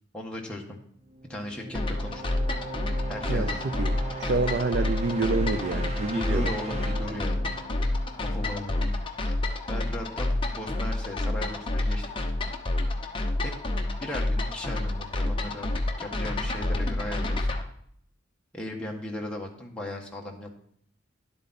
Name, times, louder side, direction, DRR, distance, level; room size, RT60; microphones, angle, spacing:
voice 1, 0.1-0.8 1.3-2.2 3.1-3.6 6.1-7.4 8.2-8.9 9.3-9.4 9.7-12.0 13.4-13.5 14.0-15.7 16.0-17.5 18.5-20.5, left 1 dB, 5° left, -1 dB, 1.4 m, -37 dB
sound 1, 1.1-8.9, right 3 dB, 35° right, 1.1 m, -39 dB
sound 2, 1.7-17.6, left 2 dB, 25° left, 1.0 m, -29 dB
voice 2, 3.3-6.5, right 3 dB, 55° right, 10 dB, 0.5 m, -28 dB
11.0 x 8.3 x 4.2 m, 0.65 s
head